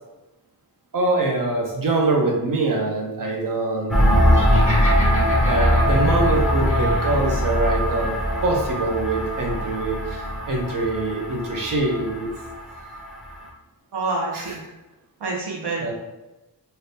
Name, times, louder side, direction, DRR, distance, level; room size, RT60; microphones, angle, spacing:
voice 1, 0.9-4.0 5.4-8.1 8.4-12.3 14.3-14.6 15.8-15.9, right 2 dB, 55° right, 1 dB, 0.8 m, -24 dB
sound 1, 3.9-13.4, equal, ahead, 0.6 m, -21 dB
Laughter, 4.3-7.3, left 1 dB, 20° left, 1.2 m, -34 dB
voice 2, 13.9-14.6 15.2-15.9, right 3 dB, 85° right, -2 dB, 0.9 m, -27 dB
3.4 x 2.8 x 2.7 m, 1.0 s
wide cardioid pair, 115°, 39 cm